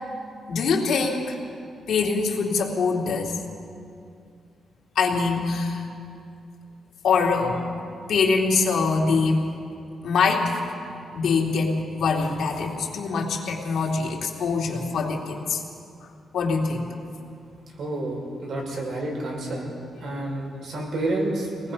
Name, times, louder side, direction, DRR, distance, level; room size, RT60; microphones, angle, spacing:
voice 1, 0.5-1.4 1.9-3.4 4.9-5.8 7.0-7.6 8.1-9.6 10.0-10.6 11.1-15.6 16.3-16.9, left 4 dB, 70° left, -1 dB, 2.8 m, -23 dB
voice 2, 17.8-19.7 20.0-21.7, right 1 dB, 60° right, -1 dB, 5.8 m, -29 dB
25.0 x 19.5 x 5.5 m, 2.4 s
wide cardioid pair, 145°, 0 cm